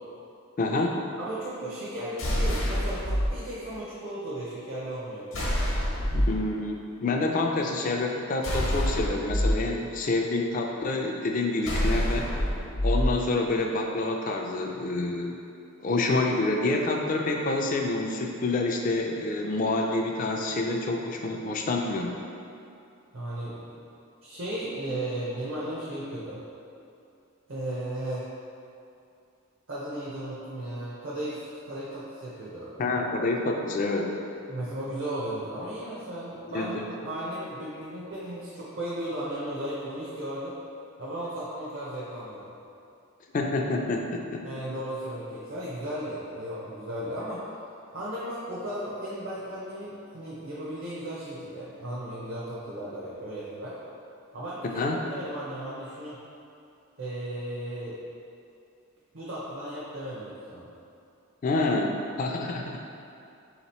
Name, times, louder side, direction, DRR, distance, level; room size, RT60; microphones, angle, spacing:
voice 1, 0.6-1.0 6.1-12.3 12.8-15.4 15.8-22.1 32.8-34.2 36.5-36.9 43.3-44.4 54.8-55.0 61.4-62.8, left 2 dB, 40° left, 1 dB, 0.3 m, -27 dB
voice 2, 1.2-5.4 23.1-23.8 24.2-26.4 27.5-28.3 29.7-32.7 34.5-40.5 41.0-42.5 44.4-47.4 47.9-53.8 54.3-54.8 55.1-56.3 57.0-58.0 59.1-60.7, right 1 dB, 65° right, -8 dB, 0.6 m, -35 dB
sound 1, 2.2-3.3 5.3-6.4 8.4-9.5 11.6-13.1, equal, 65° left, 0.9 m, -26 dB
3.6 x 2.9 x 4.1 m, 2.6 s
head